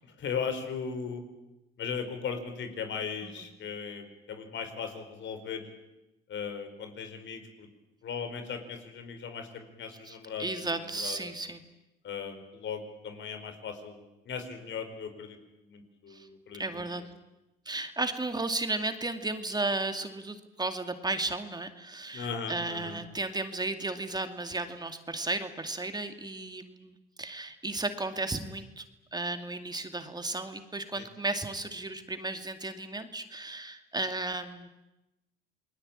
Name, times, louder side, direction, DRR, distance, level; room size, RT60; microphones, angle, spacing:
voice 1, 0.2-1.2 1.8-5.6 6.3-7.7 8.0-11.3 12.0-15.4 15.6-17.0 22.1-23.0 30.9-31.0, left 6 dB, 70° left, 7 dB, 4.7 m, -38 dB
voice 2, 10.0-11.6 16.1-16.3 16.6-17.1 17.7-28.8 29.1-34.7, right 2 dB, 20° right, 8 dB, 2.3 m, -34 dB
28.5 x 21.0 x 8.9 m, 0.96 s
cardioid pair, 90°, 20 cm